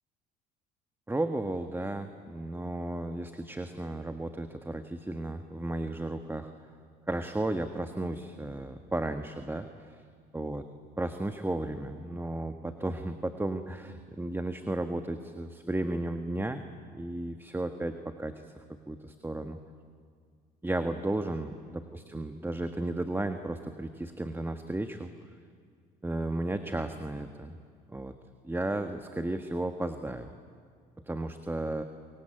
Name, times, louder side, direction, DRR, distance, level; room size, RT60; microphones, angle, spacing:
voice 1, 1.1-6.7 7.1-10.0 10.3-10.6 11.0-16.6 16.9-19.6 20.6-25.1 26.0-27.6 27.9-28.1 28.4-30.3 31.1-31.8, right 1 dB, 10° right, 7 dB, 1.5 m, -34 dB
26.5 x 22.5 x 9.1 m, 2.1 s
supercardioid pair, 70°, 21 cm